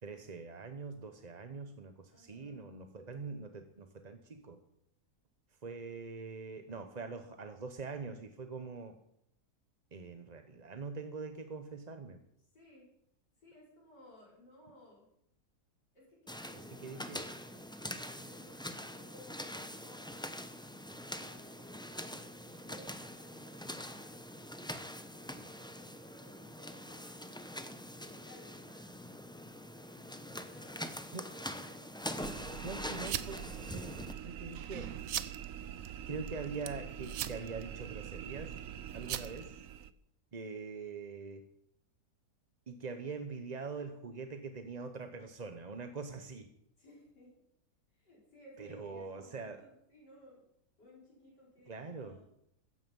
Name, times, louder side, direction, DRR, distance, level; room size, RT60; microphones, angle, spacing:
voice 1, 0.0-4.6 5.6-9.0 9.9-12.2 16.8-17.3 31.1-31.3 32.6-35.0 36.1-38.6 38.9-39.6 40.3-41.5 42.7-46.5 48.6-49.6 51.7-52.2, right 4 dB, 30° right, 7 dB, 0.8 m, -43 dB
voice 2, 2.1-2.7 12.5-12.9 13.4-15.1 15.9-17.2 17.5-20.2 21.0-24.2 25.1-27.6 28.0-31.8 46.8-47.3 47.9-50.4 50.8-52.3, left 1 dB, 85° left, -4 dB, 5.9 m, -59 dB
sound 1, 16.3-34.1, left 1 dB, 5° left, 0.4 m, -44 dB
sound 2, 32.2-39.9, right 10 dB, 60° right, 1.0 m, -41 dB
15.5 x 14.5 x 5.4 m, 0.76 s
omnidirectional pair, 1.8 m